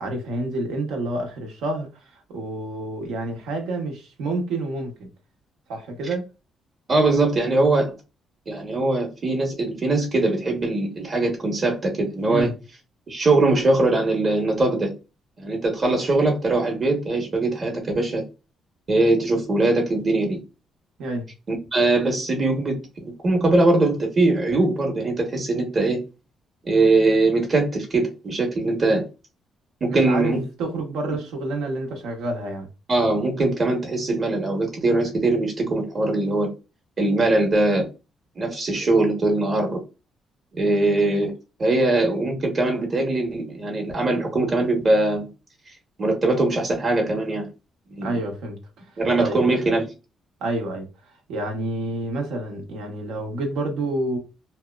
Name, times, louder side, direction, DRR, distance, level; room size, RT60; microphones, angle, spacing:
voice 1, 0.0-5.1 5.7-6.2 12.3-12.5 21.0-21.3 29.9-30.3 30.6-32.7 48.0-48.6 49.2-49.5 50.4-50.9 51.3-54.2, right 2 dB, 90° right, 0.8 m, -28 dB
voice 2, 6.9-7.9 8.5-12.5 13.1-14.9 15.4-18.2 18.9-20.4 21.5-26.0 26.6-29.0 29.8-30.4 32.9-36.5 37.0-37.9 38.4-39.8 40.6-41.3 41.6-45.3 46.0-47.5 47.9-48.2 49.0-49.8, right 2 dB, 40° right, 0.9 m, -21 dB
2.8 x 2.1 x 2.2 m
cardioid pair, 90°, 0 cm